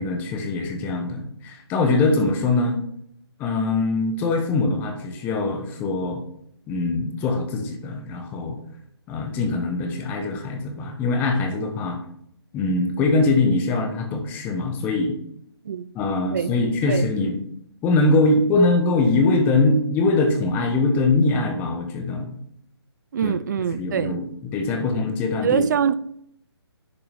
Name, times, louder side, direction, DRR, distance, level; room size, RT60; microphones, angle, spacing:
voice 1, 0.0-2.8 3.4-6.2 6.7-8.6 9.1-12.0 12.5-15.1 15.9-17.4 17.8-22.3 23.2-23.3 23.7-24.2 24.5-25.7, left 3 dB, 15° left, 1.0 m, -22 dB
voice 2, 23.1-24.2 25.4-25.9, right 8 dB, 45° right, 0.4 m, -24 dB
10.5 x 5.7 x 3.5 m
hypercardioid pair, 155°, 14 cm